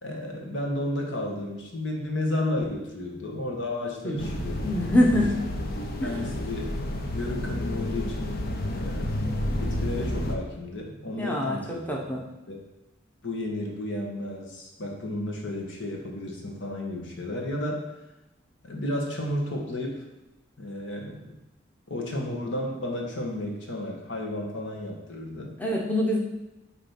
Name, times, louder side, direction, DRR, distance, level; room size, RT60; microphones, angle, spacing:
voice 1, 0.0-4.7 5.1-5.2 6.0-6.7 7.1-8.4 8.7-9.1 9.5-12.2 12.5-12.6 13.2-17.9 18.6-20.0 20.6-21.4 21.9-25.5, left 1 dB, 65° left, 0 dB, 1.4 m, -32 dB
sound 1, 4.2-10.3, left 1 dB, 50° left, 0.9 m, -30 dB
voice 2, 4.6-5.3 6.0-6.1 11.2-12.2 25.6-26.2, left 1 dB, 10° left, -2 dB, 1.0 m, -24 dB
8.6 x 3.1 x 5.9 m, 0.98 s
head